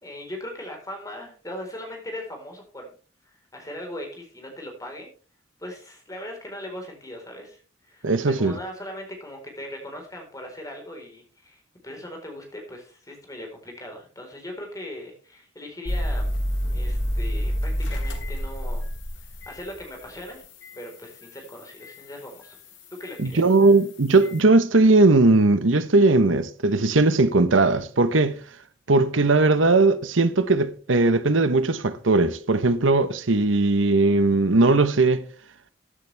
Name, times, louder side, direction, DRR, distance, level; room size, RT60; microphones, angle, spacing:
voice 1, 0.0-2.9 3.2-5.1 5.6-7.6 7.9-16.3 16.7-18.8 19.1-20.4 20.8-22.6 23.0-23.5, left 1 dB, 20° left, 4.4 m, -39 dB
voice 2, 8.0-8.6 23.2-28.4 28.9-35.2, right 3 dB, 90° right, 1.1 m, -19 dB
sound 1, 15.9-20.1 20.6-20.7 23.0-23.1, equal, 85° left, 3.4 m, -27 dB
14.0 x 11.0 x 3.5 m
head